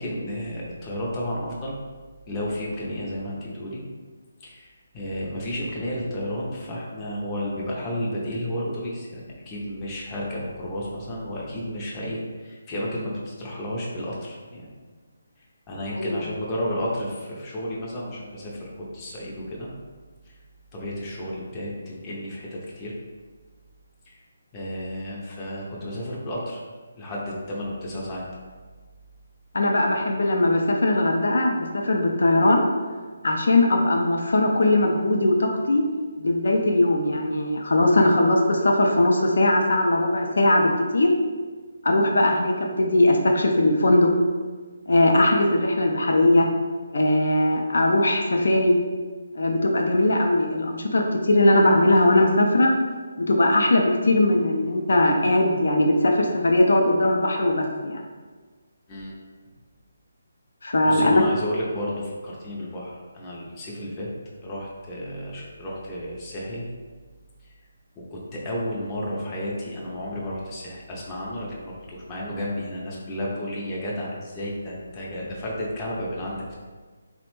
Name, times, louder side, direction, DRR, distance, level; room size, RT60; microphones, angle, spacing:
voice 1, 0.0-1.7 2.3-3.8 4.4-14.7 15.7-19.7 20.3-20.4 20.7-22.9 24.1-24.2 24.5-26.6 26.9-28.3 58.9-59.1 60.8-64.1 64.4-66.7 68.0-76.5, equal, 15° left, -5 dB, 0.5 m, -32 dB
voice 2, 29.5-32.7 33.2-35.8 36.2-41.1 41.8-44.1 44.9-46.5 46.9-48.7 49.3-52.7 53.3-58.0 60.6-61.2, left 1 dB, 75° left, 2 dB, 0.4 m, -20 dB
3.3 x 2.0 x 3.0 m, 1.4 s
hypercardioid pair, 165°, 0 cm